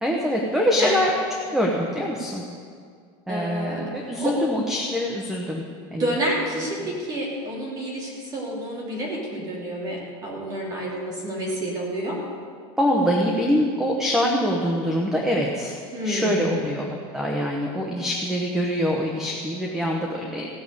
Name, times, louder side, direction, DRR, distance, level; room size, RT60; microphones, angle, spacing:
voice 1, 0.0-1.1 1.5-2.4 3.3-6.1 12.8-20.5, equal, 5° right, -1 dB, 1.0 m, -24 dB
voice 2, 3.3-3.8 4.2-4.4 6.0-12.2 15.9-16.8, right 1 dB, 30° right, -4 dB, 2.9 m, -29 dB
15.5 x 6.7 x 8.2 m, 2.1 s
cardioid pair, 165°, 14 cm